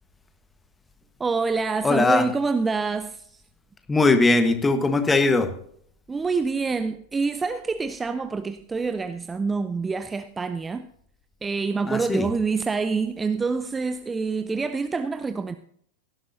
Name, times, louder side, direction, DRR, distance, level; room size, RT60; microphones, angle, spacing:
voice 1, 1.2-3.4 6.1-10.9 11.4-15.6, right 4 dB, 15° right, 0.5 m, -26 dB
voice 2, 1.8-2.2 3.9-5.5 11.9-12.3, left 3 dB, 10° left, 1.3 m, -20 dB
17.0 x 11.5 x 2.7 m
figure-of-eight pair, 90°, 0 cm